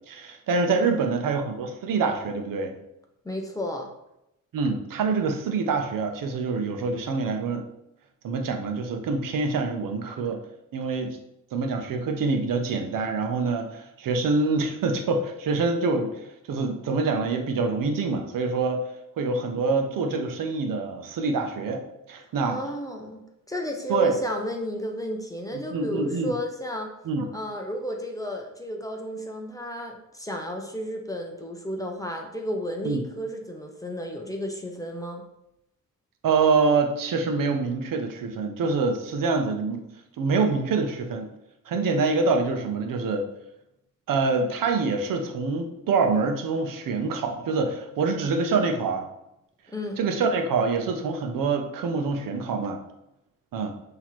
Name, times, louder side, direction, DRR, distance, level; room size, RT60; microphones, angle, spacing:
voice 1, 0.0-2.7 4.5-7.6 8.2-10.4 10.7-11.2 11.5-18.8 19.2-21.8 22.1-22.6 23.9-24.1 25.5-26.3 27.1-27.3 32.8-33.0 36.2-39.9 40.2-41.3 41.7-43.2 44.1-49.1 50.0-52.8 53.5-53.8, right 4 dB, 85° right, 5 dB, 0.7 m, -25 dB
voice 2, 0.7-1.2 3.2-3.9 22.5-23.2 23.5-26.9 27.3-35.2 49.7-50.0, equal, 10° left, 2 dB, 0.4 m, -32 dB
5.8 x 2.8 x 3.0 m, 0.84 s
wide cardioid pair, 165°, 32 cm